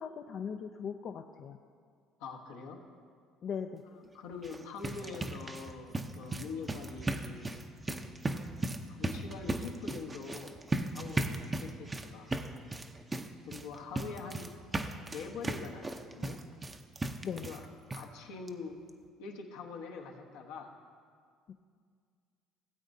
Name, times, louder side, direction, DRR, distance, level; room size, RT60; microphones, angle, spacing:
voice 1, 0.0-1.6 3.4-3.8 17.2-17.5 21.5-21.6, left 7 dB, 55° left, 4 dB, 0.4 m, -39 dB
voice 2, 2.2-2.8 3.9-7.6 7.9-8.2 8.9-10.6 10.9-12.3 13.5-14.5 15.1-16.4 17.3-18.8 19.2-20.7, left 5 dB, 80° left, 1 dB, 1.1 m, -44 dB
sound 1, 4.3-17.6 17.9-18.0 18.5-18.6 18.9-19.0, right 2 dB, 25° right, 0.6 m, -37 dB
17.0 x 8.1 x 2.7 m, 2.1 s
supercardioid pair, 70°, 0 cm